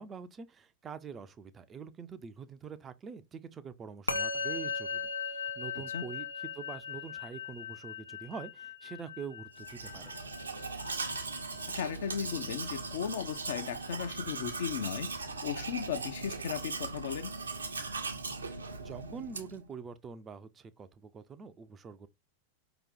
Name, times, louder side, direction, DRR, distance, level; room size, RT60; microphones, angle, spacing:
voice 1, 0.0-10.1 18.8-22.1, right 6 dB, 20° right, 0.5 m, -45 dB
Musical instrument, 4.1-13.6, left 5 dB, 85° left, 0.6 m, -39 dB
Domestic sounds home sounds, 9.6-19.7, right 3 dB, 75° right, 0.7 m, -39 dB
voice 2, 11.7-15.1 15.4-17.3, left 8 dB, 60° left, 0.8 m, -36 dB
5.0 x 3.0 x 3.5 m
figure-of-eight pair, 90°, 0 cm